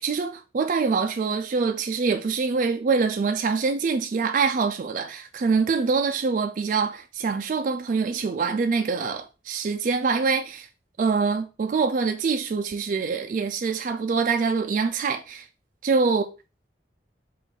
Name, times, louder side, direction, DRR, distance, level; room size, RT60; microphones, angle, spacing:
voice 1, 0.0-10.7 11.0-15.5 15.8-16.3, right 4 dB, 45° right, 0.3 m, -25 dB
5.2 x 2.4 x 3.7 m
head